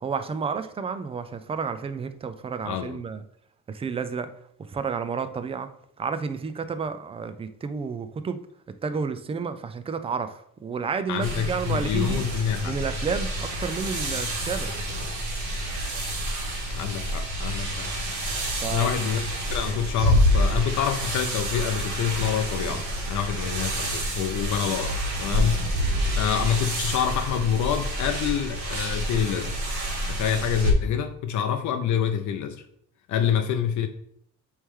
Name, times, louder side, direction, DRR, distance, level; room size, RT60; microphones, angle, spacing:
voice 1, 0.0-3.2 3.7-4.3 4.7-5.7 6.0-8.4 8.7-12.3 12.6-14.7 18.6-18.9, right 5 dB, 20° right, 0.3 m, -31 dB
voice 2, 2.6-3.0 11.1-12.8 14.1-14.3 16.7-17.9 18.7-19.2 19.5-25.7 26.1-29.6 30.1-32.6 33.1-33.9, left 8 dB, 65° left, 0.6 m, -27 dB
sound 1, 11.2-30.7, equal, 65° right, 1.8 m, -28 dB
8.3 x 3.2 x 3.6 m
cardioid pair, 150°, 32 cm